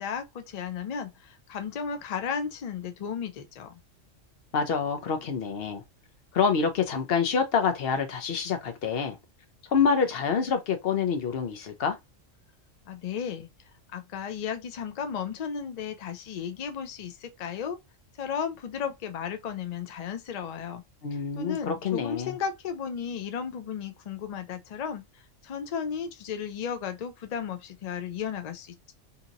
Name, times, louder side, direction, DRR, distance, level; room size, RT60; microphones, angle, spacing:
voice 1, 0.0-3.7 12.9-13.5 13.9-17.8 18.2-20.8 21.4-28.9, left 7 dB, 80° left, 0.3 m, -34 dB
voice 2, 4.5-5.8 6.3-9.2 9.7-12.0 21.0-22.3, left 6 dB, 60° left, 0.8 m, -26 dB
2.8 x 2.7 x 2.4 m
omnidirectional pair, 1.3 m